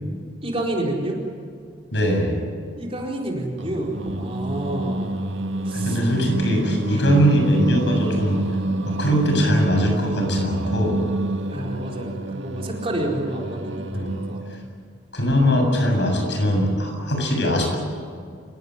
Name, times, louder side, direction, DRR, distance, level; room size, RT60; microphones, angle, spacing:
voice 1, 0.4-1.2 2.8-5.2 5.6-6.0 6.9-7.0 11.5-14.4, right 1 dB, 30° right, -1 dB, 4.3 m, -29 dB
voice 2, 1.9-2.4 5.7-8.4 8.9-11.0 13.9-14.1 15.1-17.8, equal, 70° left, 2 dB, 7.5 m, -21 dB
Singing, 3.6-14.7, right 2 dB, 85° right, 2.0 m, -28 dB
27.5 x 17.5 x 9.7 m, 2.2 s
head